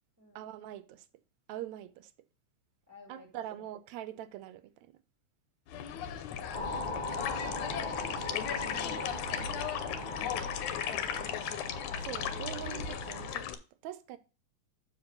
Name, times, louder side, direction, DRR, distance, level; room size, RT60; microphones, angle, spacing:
voice 1, 0.4-1.1 1.5-2.1 3.1-5.0 12.0-14.2, right 12 dB, 80° right, 1.9 m, -43 dB
voice 2, 2.9-3.3 3.6-3.7 6.3-7.2 7.9-9.6 11.1-11.8, left 1 dB, 5° right, 1.5 m, -53 dB
sound 1, 5.7-13.5, left 9 dB, 80° left, 2.1 m, -36 dB
sound 2, 6.5-13.3, left 2 dB, 40° left, 0.7 m, -39 dB
6.9 x 4.8 x 5.7 m
omnidirectional pair, 3.4 m